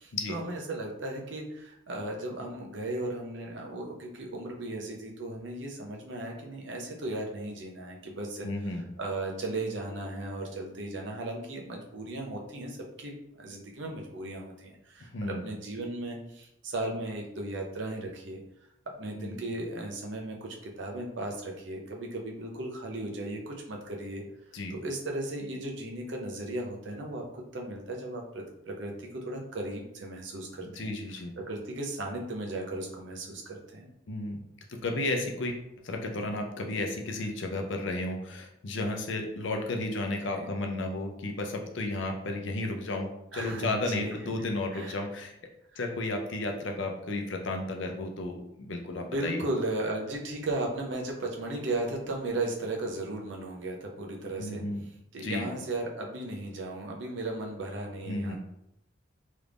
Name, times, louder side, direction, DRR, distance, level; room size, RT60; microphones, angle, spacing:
voice 1, 0.0-8.5 9.0-18.4 19.0-24.2 24.7-30.9 31.4-33.9 40.3-40.5 43.3-44.4 44.7-45.0 45.7-45.8 49.0-54.6 55.1-58.4, right 2 dB, 65° right, 0 dB, 0.7 m, -36 dB
voice 2, 8.4-8.9 15.1-15.4 19.2-19.4 24.5-24.8 30.6-31.3 34.1-34.4 34.7-35.6 35.8-45.3 45.8-49.4 54.4-54.8 55.2-55.5 58.0-58.4, left 2 dB, 70° left, 3 dB, 0.6 m, -33 dB
3.1 x 2.5 x 3.4 m, 0.81 s
head